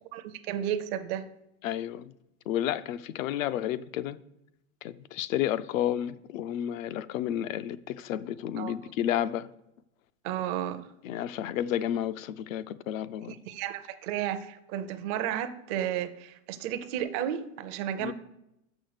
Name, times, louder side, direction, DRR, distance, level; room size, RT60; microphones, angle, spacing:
voice 1, 0.1-1.3 8.6-8.7 10.2-10.9 13.3-18.1, right 10 dB, 30° right, 0.4 m, -33 dB
voice 2, 1.6-2.1 2.5-4.2 4.8-9.5 11.0-13.4 18.0-18.1, left 11 dB, 75° left, 0.6 m, -31 dB
6.3 x 6.3 x 6.5 m
supercardioid pair, 150°, 41 cm